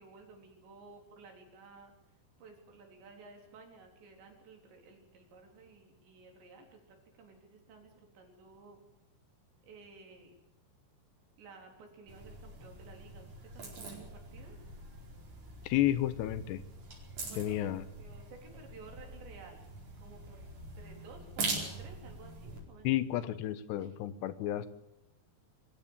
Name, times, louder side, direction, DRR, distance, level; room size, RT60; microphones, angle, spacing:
voice 1, 0.0-8.8 9.6-10.4 11.4-14.6 17.3-17.6 18.0-19.7 20.0-20.5 20.8-22.9 23.8-24.0, right 4 dB, 80° right, 3 dB, 6.1 m, -54 dB
sound 1, 12.1-22.6, right 3 dB, 45° right, 5.9 m, -43 dB
voice 2, 15.6-16.6 17.4-17.8 22.8-24.7, left 13 dB, 80° left, 15 dB, 3.1 m, -31 dB
24.0 x 15.5 x 8.9 m, 0.86 s
omnidirectional pair, 5.0 m